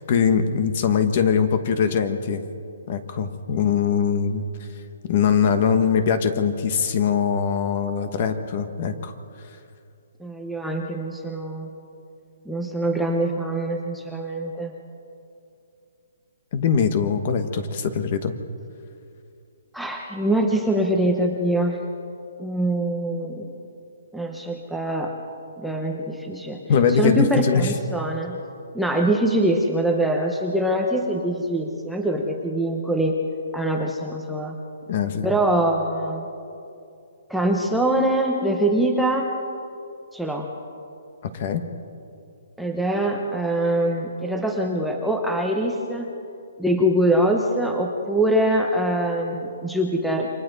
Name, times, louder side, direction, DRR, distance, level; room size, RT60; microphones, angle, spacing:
voice 1, 0.0-2.4 2.9-4.4 5.1-9.1 16.5-18.3 26.7-27.7 34.9-35.3 41.2-41.6, left 6 dB, 35° left, 9 dB, 1.2 m, -22 dB
voice 2, 10.2-11.7 12.5-14.7 19.7-21.8 22.4-23.5 24.1-25.1 25.6-26.6 27.0-28.4 28.7-33.2 33.5-34.5 35.2-36.3 37.3-39.3 40.1-40.5 42.6-46.1 46.6-50.3, right 1 dB, ahead, 0 dB, 0.9 m, -23 dB
28.5 x 25.0 x 4.1 m, 2.6 s
hypercardioid pair, 175°, 0 cm